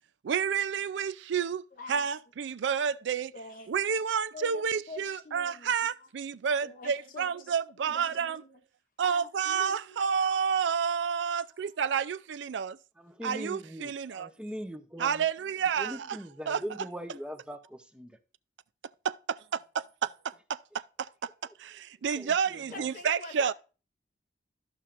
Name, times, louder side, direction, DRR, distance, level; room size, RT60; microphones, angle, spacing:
voice 1, 0.2-3.3 3.7-8.4 9.0-12.8 13.2-14.3 15.0-16.2 16.5-16.6 19.5-21.3 21.6-23.5, right 7 dB, 80° right, 0.4 m, -30 dB
voice 2, 1.7-2.0 3.3-3.7 4.3-5.7 6.6-7.5 7.8-8.5 9.0-10.5 10.8-11.1 22.7-23.5, left 3 dB, 45° left, 0.5 m, -46 dB
voice 3, 13.0-15.3 15.8-18.2 22.1-22.9, equal, 5° right, 0.6 m, -41 dB
13.5 x 5.7 x 2.5 m
head